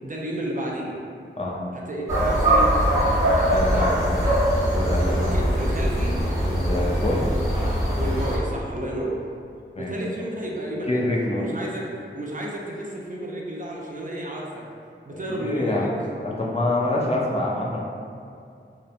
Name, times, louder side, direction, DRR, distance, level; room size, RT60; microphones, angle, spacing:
voice 1, 0.0-1.0 1.7-2.7 3.5-4.0 5.1-6.2 7.1-7.2 7.9-9.2 9.8-11.1 11.3-14.6 15.1-15.9 16.8-17.0, right 1 dB, 40° right, -2 dB, 0.4 m, -32 dB
sound 1, 2.1-8.4, right 1 dB, 15° right, 1.0 m, -22 dB
voice 2, 3.4-3.9 4.7-5.3 6.5-7.2 9.7-9.9 10.9-11.4 15.1-15.9 16.2-17.9, left 2 dB, 30° left, -4 dB, 0.4 m, -26 dB
2.8 x 2.0 x 2.4 m, 2.4 s
wide cardioid pair, 45°, 20 cm